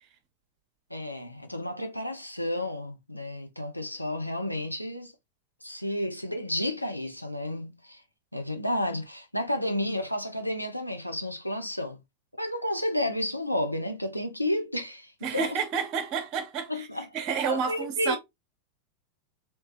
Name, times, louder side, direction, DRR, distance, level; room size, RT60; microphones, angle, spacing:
voice 1, 0.9-5.1 5.6-8.0 8.3-12.0 12.4-15.5 16.7-17.1 17.5-18.2, left 1 dB, 90° left, 0.6 m, -31 dB
voice 2, 15.2-16.9 17.1-18.2, right 6 dB, 40° right, 0.9 m, -30 dB
3.2 x 3.1 x 2.9 m
figure-of-eight pair, 90°, 0 cm